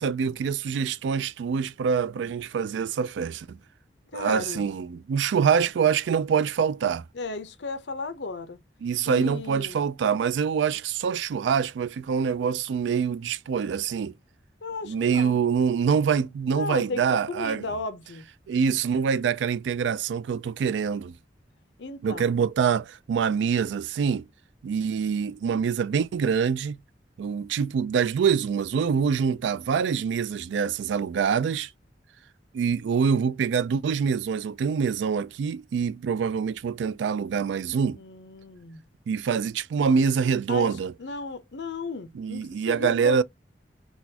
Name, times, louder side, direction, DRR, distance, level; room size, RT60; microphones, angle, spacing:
voice 1, 0.0-3.6 4.1-7.0 8.8-14.1 14.8-17.6 18.5-21.1 22.0-24.3 24.6-26.8 27.2-31.7 32.5-38.0 39.1-40.9 42.2-43.2, right 6 dB, 90° right, 0.3 m, -25 dB
voice 2, 4.1-4.7 7.1-8.6 9.1-9.8 14.6-15.4 16.5-18.2 21.8-22.3 37.9-38.8 40.5-40.7 41.0-43.2, left 3 dB, 75° left, 0.7 m, -35 dB
4.0 x 2.4 x 2.7 m
head